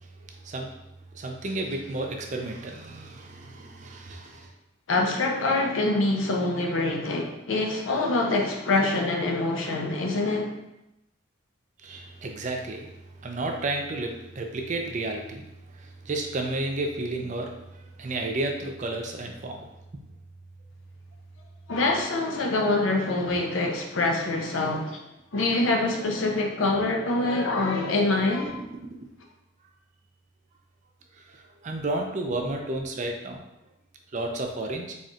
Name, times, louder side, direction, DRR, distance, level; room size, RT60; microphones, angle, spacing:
voice 1, 1.1-4.5 11.8-12.9 13.2-15.5 15.7-19.7 31.2-33.4 34.1-34.9, right 2 dB, 40° right, 3 dB, 0.4 m, -32 dB
voice 2, 4.9-10.5 21.7-25.1 25.3-28.6, left 2 dB, 80° left, 1 dB, 0.6 m, -25 dB
4.1 x 3.1 x 2.5 m, 0.87 s
head